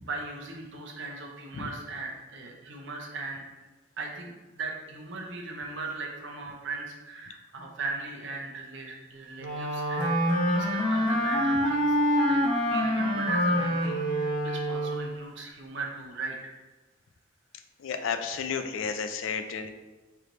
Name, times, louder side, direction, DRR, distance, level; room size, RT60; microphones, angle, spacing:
voice 1, 0.0-3.4 4.0-16.5, right 3 dB, 65° right, 0 dB, 0.8 m, -38 dB
Wind instrument woodwind instrument, 9.4-15.1, equal, 25° left, 0.9 m, -26 dB
voice 2, 17.8-19.7, left 6 dB, 80° left, 8 dB, 0.4 m, -32 dB
3.3 x 3.0 x 3.8 m, 1.2 s
head